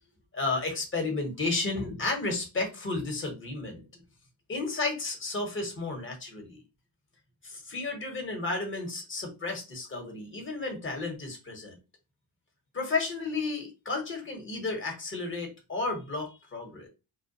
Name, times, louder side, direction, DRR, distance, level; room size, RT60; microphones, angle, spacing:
voice 1, 0.3-3.8 4.5-6.6 7.4-11.7 12.7-16.9, left 3 dB, 25° left, 2 dB, 1.0 m, -32 dB
2.3 x 2.1 x 2.7 m, 0.28 s
cardioid pair, 105°, 44 cm